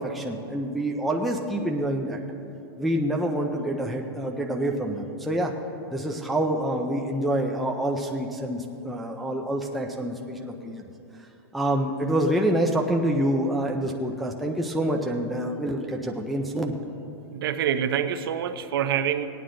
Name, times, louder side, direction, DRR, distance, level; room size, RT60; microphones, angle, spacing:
voice 1, 0.0-2.2 2.8-5.5 5.9-10.8 11.5-16.7, right 1 dB, ahead, 0.3 m, -27 dB
voice 2, 17.3-19.3, right 9 dB, 65° right, 0.7 m, -26 dB
17.5 x 9.3 x 3.8 m
supercardioid pair, 170°, 13 cm